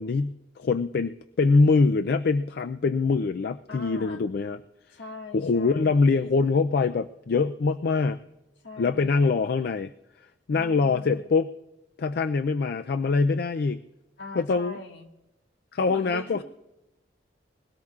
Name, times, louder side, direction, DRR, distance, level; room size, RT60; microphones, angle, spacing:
voice 1, 0.0-4.6 5.3-8.2 8.8-9.9 10.5-11.5 12.0-13.8 14.3-14.8 15.7-16.4, left 4 dB, 60° left, 11 dB, 0.4 m, -24 dB
voice 2, 3.7-4.2 4.9-6.1 8.6-9.3 10.5-11.2 14.2-15.1 15.9-16.4, left 2 dB, 80° left, 3 dB, 1.7 m, -41 dB
21.5 x 17.5 x 2.4 m, 0.97 s
head